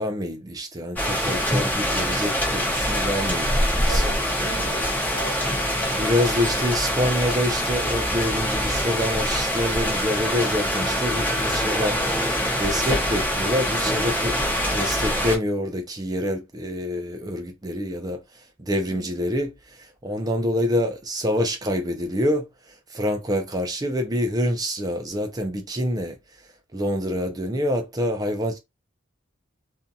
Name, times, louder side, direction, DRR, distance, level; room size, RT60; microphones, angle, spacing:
voice 1, 0.0-4.7 5.9-26.2 26.7-28.6, equal, 20° right, 0.5 m, -27 dB
sound 1, 1.0-15.4, equal, 10° left, 0.8 m, -24 dB
voice 2, 3.9-6.1 18.9-19.2, equal, 60° left, 1.2 m, -39 dB
2.6 x 2.6 x 2.3 m
head